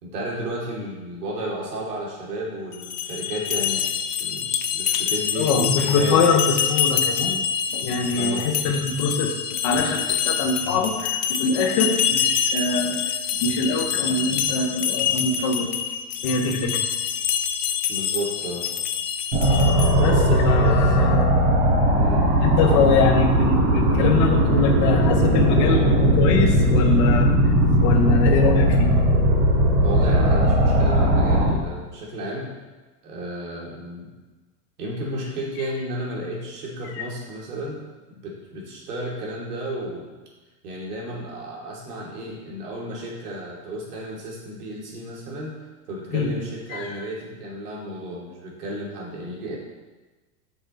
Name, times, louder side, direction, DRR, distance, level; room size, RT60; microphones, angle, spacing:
voice 1, 0.0-6.4 8.1-8.5 17.9-18.7 20.6-20.9 21.9-22.3 29.8-32.6 33.0-34.1 34.8-37.8 38.1-40.1 40.6-45.5 45.9-49.6, right 1 dB, 80° right, -3 dB, 3.1 m, -32 dB
sound 1, 2.7-20.2, left 8 dB, 80° left, 0.9 m, -26 dB
voice 2, 5.4-7.4 7.7-13.0 13.4-15.7 16.2-16.8 20.0-21.3 22.4-27.3 27.8-28.9 46.1-46.3 46.7-47.0, left 4 dB, 20° left, 3 dB, 0.5 m, -23 dB
sound 2, 19.3-31.5, equal, 25° right, 1.5 m, -18 dB
8.0 x 6.2 x 4.5 m, 1.2 s
supercardioid pair, 175°, 46 cm